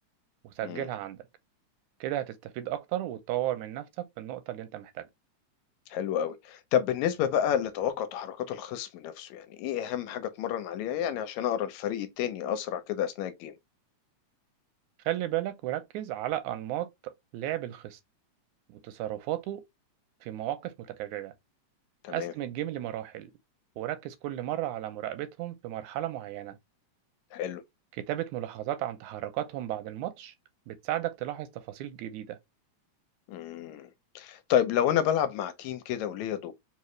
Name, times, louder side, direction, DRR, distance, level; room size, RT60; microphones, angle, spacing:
voice 1, 0.4-1.2 2.0-5.1 15.1-18.0 18.7-19.6 20.2-21.3 22.1-23.3 23.8-26.6 28.0-30.3 30.7-32.4, right 13 dB, 85° right, 2.0 m, -34 dB
voice 2, 5.9-13.5 22.0-22.3 27.3-27.6 33.3-33.9 34.2-36.5, left 10 dB, 80° left, 1.9 m, -30 dB
4.7 x 2.8 x 3.1 m
omnidirectional pair, 3.4 m